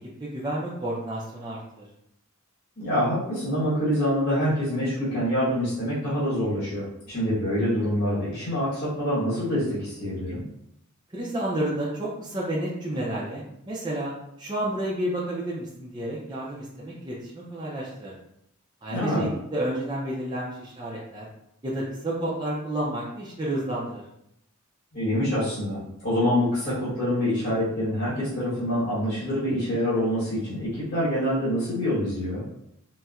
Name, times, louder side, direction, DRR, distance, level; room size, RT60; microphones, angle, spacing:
voice 1, 0.2-1.9 11.1-14.1 14.4-18.1 18.8-21.2 21.6-24.0, right 1 dB, 20° right, -6 dB, 0.4 m, -30 dB
voice 2, 2.8-10.4 18.9-19.3 24.9-32.4, equal, 50° left, -10 dB, 1.1 m, -26 dB
4.1 x 2.1 x 2.3 m, 0.77 s
head